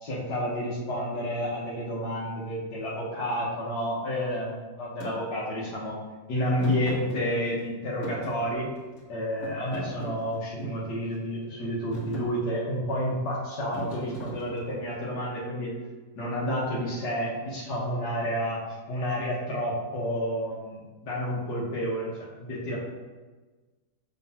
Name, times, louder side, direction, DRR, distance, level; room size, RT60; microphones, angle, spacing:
voice 1, 0.0-6.0 6.3-8.7 9.1-15.7 16.2-18.6 18.9-22.1 22.4-22.8, equal, 85° left, -6 dB, 1.9 m, -30 dB
Thump thud, 5.0-5.2 6.6-7.7 8.0-9.0 9.4-10.9 11.4-11.7 11.9-12.3 13.7-14.8, right 1 dB, 60° left, 1.8 m, -38 dB
6.2 x 5.7 x 2.8 m, 1.3 s
omnidirectional pair, 1.7 m